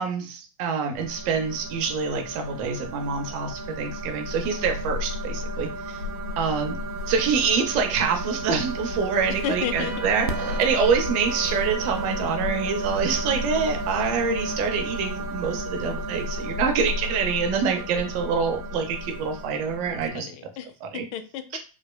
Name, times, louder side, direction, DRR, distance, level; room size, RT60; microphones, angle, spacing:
voice 1, 0.0-6.0 6.4-6.8 7.1-20.3 20.8-21.0 21.5-21.6, right 6 dB, 40° right, 4 dB, 0.7 m, -26 dB
sound 1, 0.9-20.1, equal, 85° right, 0.5 m, -32 dB
voice 2, 9.3-10.0 17.6-18.0 19.8-21.6, left 9 dB, 40° left, 11 dB, 0.4 m, -34 dB
Trumpet, 9.7-14.8, right 2 dB, 10° right, 1.1 m, -44 dB
3.1 x 2.1 x 2.2 m, 0.35 s
hypercardioid pair, 100°, 18 cm